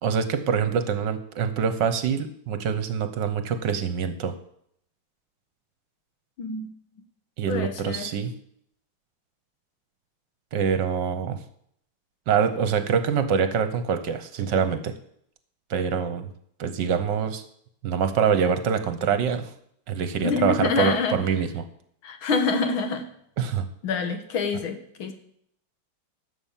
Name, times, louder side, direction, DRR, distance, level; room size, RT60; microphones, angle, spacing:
voice 1, 0.0-4.3 7.4-8.3 10.5-11.4 12.3-14.9 15.7-16.3 16.6-17.4 17.8-19.5 19.9-21.6 23.4-23.7, right 7 dB, 65° right, 10 dB, 1.4 m, -25 dB
voice 2, 6.4-6.7 7.5-8.1 20.2-21.2 22.0-23.1 23.8-25.1, left 4 dB, 75° left, 7 dB, 2.1 m, -26 dB
11.5 x 7.1 x 7.3 m, 0.69 s
omnidirectional pair, 2.3 m